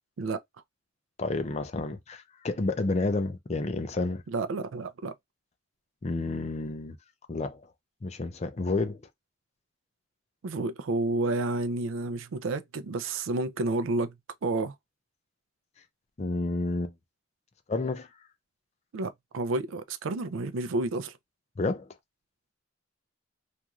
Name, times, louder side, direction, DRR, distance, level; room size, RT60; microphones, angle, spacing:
voice 1, 1.2-4.2 6.0-7.0 7.3-7.6 8.0-9.0 16.2-16.9 17.7-18.1 21.6-21.9, left 3 dB, 35° left, 0.4 m, -30 dB
voice 2, 4.3-5.1 10.4-14.1 14.4-14.7 18.9-21.1, right 2 dB, 85° right, 0.4 m, -30 dB
3.0 x 2.5 x 2.3 m
head